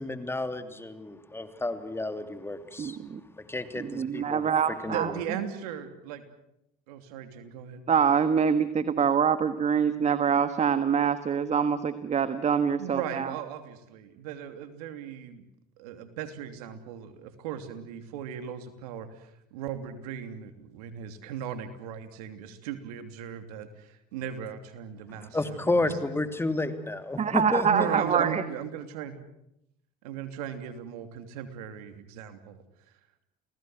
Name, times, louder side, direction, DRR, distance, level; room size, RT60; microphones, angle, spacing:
voice 1, 0.0-3.0 3.4-4.5 4.8-5.2 25.1-27.7, left 2 dB, 10° left, 9 dB, 2.9 m, -31 dB
voice 2, 2.8-3.2 3.8-5.1 7.9-13.3 27.2-28.4, right 7 dB, 35° right, 12 dB, 1.5 m, -25 dB
voice 3, 4.9-6.2 6.9-7.8 12.8-15.4 15.8-26.0 27.7-29.2 30.0-32.6, right 9 dB, 85° right, 9 dB, 3.0 m, -37 dB
29.0 x 19.0 x 8.0 m, 0.80 s
supercardioid pair, 85°, 19 cm